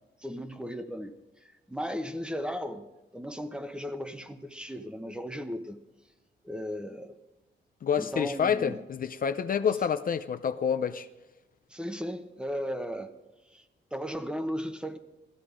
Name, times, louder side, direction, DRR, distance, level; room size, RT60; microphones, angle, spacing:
voice 1, 0.2-1.1 1.4-5.8 6.4-7.1 7.9-8.8 11.7-13.2 13.5-13.6 13.9-15.0, equal, 5° right, 1.0 m, -36 dB
voice 2, 7.8-11.1, left 7 dB, 50° left, 0.6 m, -28 dB
17.5 x 14.5 x 5.1 m
wide cardioid pair, 135°, 19 cm